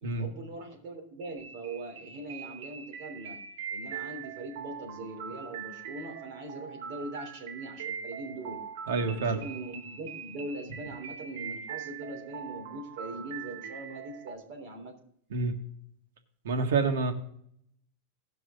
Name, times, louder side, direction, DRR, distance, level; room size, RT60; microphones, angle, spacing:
voice 1, 0.0-3.4 3.7-8.6 9.1-14.9, right 2 dB, 45° right, 2 dB, 3.2 m, -41 dB
sound 1, 1.4-14.3, right 7 dB, 70° right, 1.2 m, -42 dB
voice 2, 8.9-9.4 15.3-15.5 16.4-17.1, right 4 dB, 90° right, 5 dB, 1.6 m, -27 dB
17.5 x 6.0 x 3.8 m, 0.68 s
supercardioid pair, 165°, 0 cm